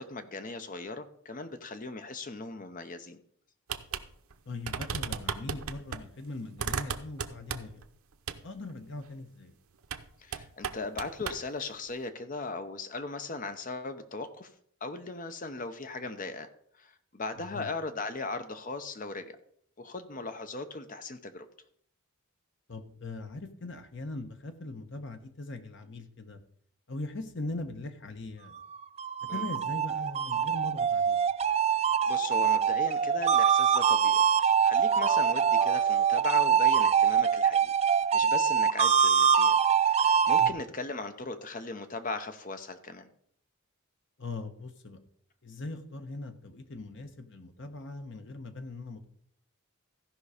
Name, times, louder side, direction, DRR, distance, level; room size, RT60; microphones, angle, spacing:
voice 1, 0.0-3.2 10.2-14.5 14.8-16.5 16.8-19.4 19.8-21.5 29.3-29.4 32.1-34.2 34.6-37.7 38.1-39.5 39.8-43.0, left 3 dB, 40° left, 9 dB, 0.7 m, -38 dB
sound 1, 3.7-4.1 4.3-4.4 4.7-6.0 6.6-7.8 8.3-8.4 9.8-10.1 10.3-11.4, right 6 dB, 90° right, 0.7 m, -35 dB
voice 2, 4.5-7.8 8.4-9.5 17.4-17.7 22.7-26.4 26.9-28.6 29.2-31.2 40.4-40.6 44.2-45.0 45.4-49.1, left 2 dB, 60° left, 7 dB, 1.1 m, -40 dB
sound 2, 28.7-40.5, right 7 dB, 30° right, 0.3 m, -24 dB
14.5 x 5.5 x 4.9 m, 0.67 s
head